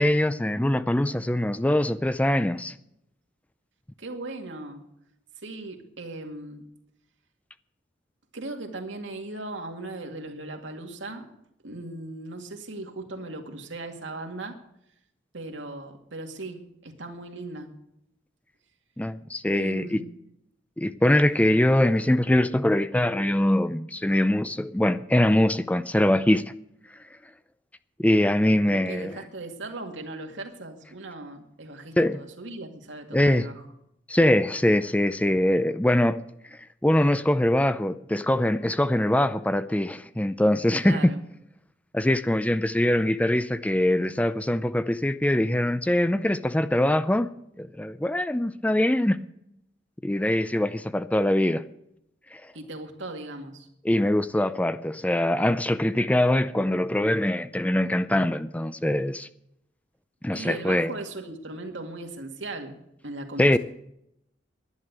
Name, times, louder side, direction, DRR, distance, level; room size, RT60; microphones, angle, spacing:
voice 1, 0.0-2.7 19.0-20.0 20.8-26.4 28.0-29.1 32.0-32.2 33.1-33.5 34.1-36.2 36.8-41.1 41.9-47.3 47.6-49.2 50.0-51.6 52.3-52.4 53.8-59.3 60.2-61.0 63.4-63.6, left 1 dB, 10° left, 0.4 m, -23 dB
voice 2, 4.0-4.8 5.4-6.6 8.3-11.3 11.6-14.6 15.3-17.7 19.5-20.2 28.5-33.6 40.8-41.2 52.5-53.7 60.3-62.7 63.0-63.6, right 2 dB, 80° right, 2.2 m, -38 dB
11.0 x 10.5 x 8.1 m
head